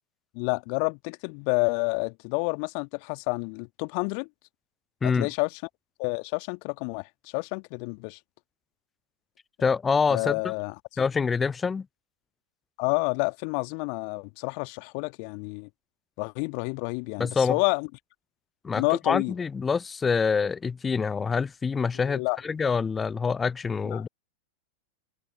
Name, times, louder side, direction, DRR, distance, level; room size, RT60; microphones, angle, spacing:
voice 1, 0.3-4.3 5.0-5.6 6.0-8.2 10.1-11.0 12.8-15.7 16.2-17.9 18.8-19.4 21.9-22.4 23.8-24.1, left 40 dB or more, 45° left, 1.9 m, -29 dB
voice 2, 9.6-10.5 11.0-11.9 17.2-17.6 18.6-24.1, left 5 dB, 15° left, 0.3 m, -26 dB
figure-of-eight pair, 90°, 0 cm